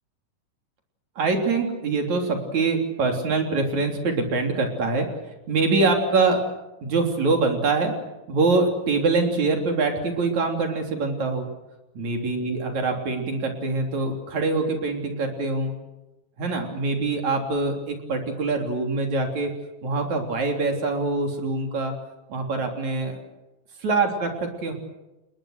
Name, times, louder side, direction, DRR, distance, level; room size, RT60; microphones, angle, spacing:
voice 1, 1.2-5.1 5.5-6.4 6.8-7.9 8.3-11.5 11.9-15.7 16.4-19.5 19.8-21.9 22.3-23.2 23.8-24.7, right 3 dB, 50° right, 3 dB, 4.5 m, -24 dB
29.5 x 20.5 x 6.6 m, 1.0 s
omnidirectional pair, 4.2 m